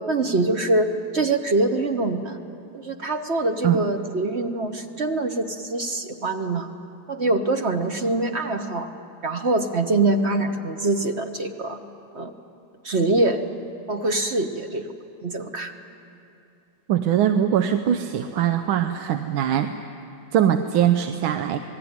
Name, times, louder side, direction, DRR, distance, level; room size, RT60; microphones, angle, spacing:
voice 1, 0.1-2.4 2.7-6.7 7.1-8.9 9.2-11.8 12.1-12.3 12.8-13.5 13.9-14.9 15.2-15.7, right 2 dB, 40° right, 6 dB, 1.1 m, -24 dB
voice 2, 16.9-19.7 20.3-21.6, right 10 dB, 80° right, 8 dB, 1.6 m, -21 dB
27.0 x 20.0 x 9.6 m, 2.8 s
omnidirectional pair, 2.2 m